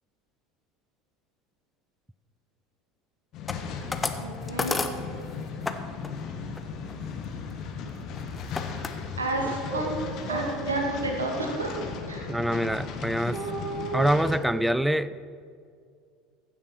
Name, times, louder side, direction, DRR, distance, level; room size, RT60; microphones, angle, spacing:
sound 1, 3.3-14.4, left 5 dB, 45° left, 1.3 m, -36 dB
sound 2, 3.5-5.8 6.0-6.2 6.5-8.9 9.5-9.8 10.2-10.3 10.5-11.1, left 3 dB, 15° left, 0.9 m, -33 dB
voice 1, 4.2-4.8 9.2-9.9 10.3-11.8 12.1-12.3, right 2 dB, 80° right, 1 dB, 1.8 m, -30 dB
sound 3, 9.4-9.5 9.7-9.9 10.3-10.6 13.3-14.4, right 4 dB, 40° right, 1.7 m, -33 dB
voice 2, 12.3-13.4 13.9-15.2, equal, 5° right, 16 dB, 0.4 m, -25 dB
15.5 x 7.4 x 6.0 m, 2.2 s
figure-of-eight pair, 70°, 0 cm